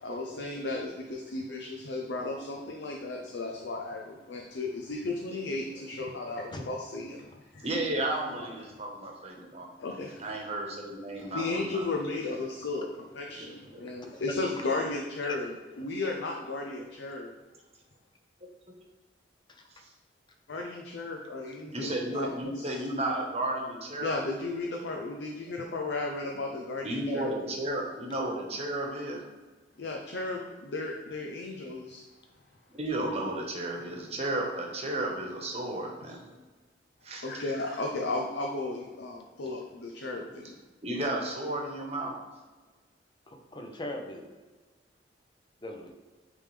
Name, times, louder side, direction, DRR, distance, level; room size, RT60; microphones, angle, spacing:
voice 1, 0.0-7.7 9.8-10.2 11.2-12.9 13.1-15.5 15.8-17.3 20.5-22.3 22.6-22.8 24.0-27.3 29.8-32.0 37.2-40.6, left 2 dB, 80° left, 1 dB, 0.6 m, -34 dB
voice 2, 7.6-9.7 10.2-11.9 13.3-13.9 17.2-17.3 18.8-18.9 19.8-19.9 21.7-24.2 26.8-29.2 32.7-36.3 37.0-37.5 40.8-42.1, right 1 dB, 35° right, 0 dB, 1.2 m, -33 dB
voice 3, 19.5-19.8 43.3-44.2 45.6-45.9, left 1 dB, 25° left, 3 dB, 0.8 m, -40 dB
8.7 x 3.5 x 3.3 m, 1.3 s
head